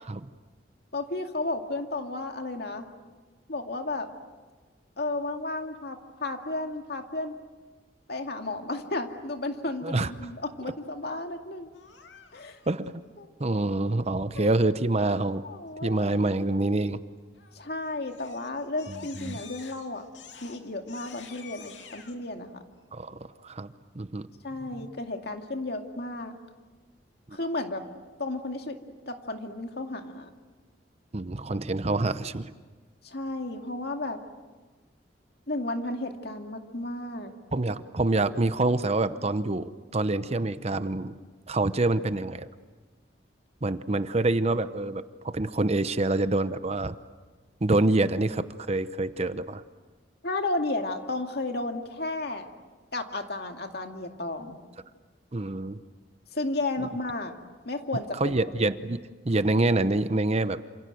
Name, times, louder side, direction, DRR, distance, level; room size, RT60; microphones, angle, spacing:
voice 1, 0.9-2.9 3.5-4.1 5.0-7.3 8.1-11.7 12.3-12.6 13.2-13.6 14.4-14.5 15.4-16.2 17.5-20.1 20.4-22.6 24.4-26.4 27.3-27.8 28.2-28.8 29.1-30.3 33.0-34.2 35.5-37.3 50.2-52.5 52.9-54.6 56.3-57.3 57.7-58.4, left 2 dB, 60° left, 4 dB, 2.3 m, -33 dB
Crying sobbing, 11.7-12.7 17.4-17.7 18.1-22.2, left 6 dB, 85° left, 2.8 m, -48 dB
voice 2, 13.4-15.4 15.8-17.0 19.2-19.4 22.9-24.3 24.7-24.9 27.3-27.4 31.1-32.5 37.5-41.1 41.5-42.5 43.6-46.9 47.6-49.6 55.3-55.8 58.1-60.6, right 2 dB, 35° right, 12 dB, 0.8 m, -26 dB
28.0 x 27.0 x 7.8 m, 1.3 s
head